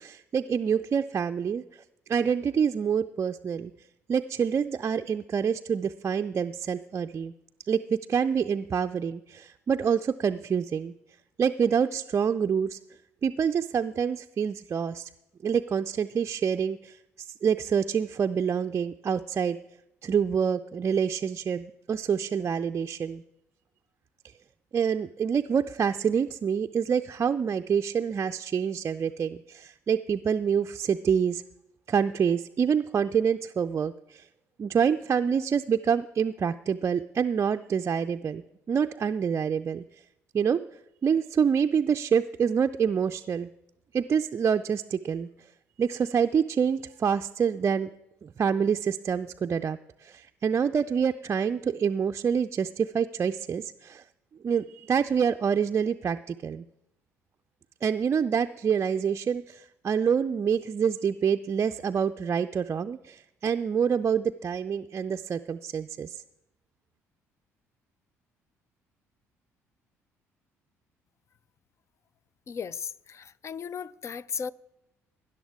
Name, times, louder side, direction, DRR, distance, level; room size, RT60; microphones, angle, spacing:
voice 1, 0.0-1.8 2.1-3.7 4.1-7.3 7.7-10.9 11.4-12.8 13.2-15.1 15.4-19.6 20.0-23.2 24.7-31.4 31.9-34.3 34.6-38.4 38.7-39.8 40.3-40.6 41.0-43.5 43.9-45.3 45.8-47.9 48.2-54.0 54.4-56.6 57.8-66.2, right 7 dB, 35° right, 0.4 m, -27 dB
voice 2, 72.5-74.5, left 6 dB, 35° left, 0.4 m, -36 dB
19.0 x 10.5 x 3.6 m
figure-of-eight pair, 50°, 8 cm